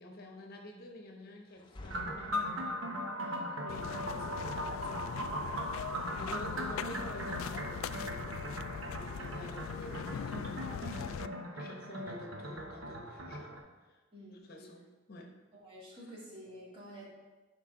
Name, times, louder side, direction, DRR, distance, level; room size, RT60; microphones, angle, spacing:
voice 1, 0.0-2.4 3.2-5.4 5.7-8.6 8.9-13.6 13.8-14.0 14.4-15.3, left 1 dB, 50° left, 2 dB, 1.0 m, -49 dB
sound 1, 1.5-3.2, left 1 dB, 25° left, 0.6 m, -51 dB
sound 2, 1.9-13.6, equal, 75° right, 1.1 m, -39 dB
voice 2, 3.2-3.7 11.6-11.9 14.1-14.4 15.5-17.1, equal, 30° right, -7 dB, 2.8 m, -50 dB
sound 3, 3.7-11.3, left 7 dB, 90° left, 0.3 m, -41 dB
11.5 x 5.2 x 3.8 m, 1.3 s
head